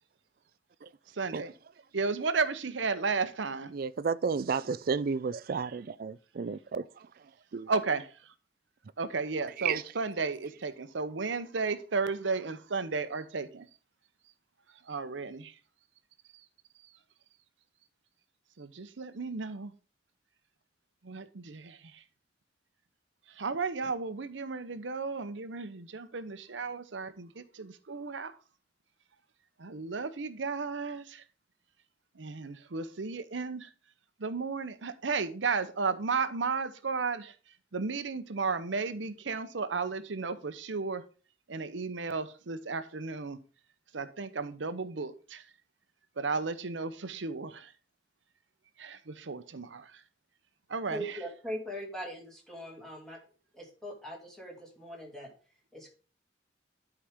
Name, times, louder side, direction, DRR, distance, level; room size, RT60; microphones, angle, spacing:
voice 1, 1.2-1.5 1.9-3.7 7.7-8.1 9.0-13.6 14.9-15.5 18.6-19.7 21.0-21.8 23.4-28.3 29.6-31.2 32.2-33.7 34.2-37.3 37.7-41.0 41.5-43.4 43.9-45.4 46.2-47.7 48.8-49.9 50.7-51.0, right 4 dB, 90° right, 0.8 m, -34 dB
voice 2, 3.7-7.1 7.5-7.7 9.6-9.8, right 5 dB, 55° right, 0.4 m, -32 dB
voice 3, 50.8-53.2 53.5-55.3 55.7-55.9, equal, 5° left, 2.5 m, -41 dB
11.5 x 4.9 x 3.6 m
head